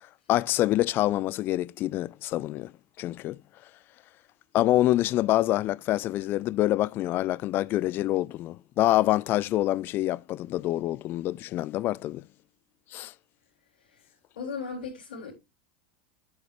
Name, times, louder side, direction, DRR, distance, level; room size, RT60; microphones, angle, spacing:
voice 1, 0.3-2.7 3.0-3.4 4.5-12.2 12.9-13.1, left 15 dB, 45° left, 0.5 m, -26 dB
voice 2, 14.4-15.3, left 5 dB, 80° left, 3.8 m, -37 dB
11.5 x 8.1 x 3.3 m
hypercardioid pair, 100°, 5 cm